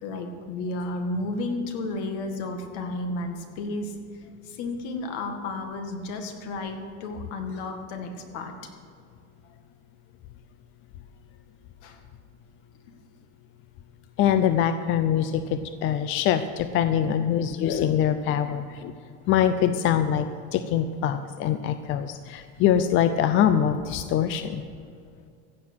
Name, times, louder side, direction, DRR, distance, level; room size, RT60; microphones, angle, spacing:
voice 1, 0.0-8.7 11.8-12.0 17.1-17.2, left 2 dB, 65° left, 5 dB, 1.9 m, -33 dB
voice 2, 14.2-18.9 19.3-20.3 20.5-24.6, left 9 dB, 35° left, 10 dB, 0.5 m, -23 dB
15.5 x 7.5 x 6.3 m, 2.3 s
supercardioid pair, 145°, 35 cm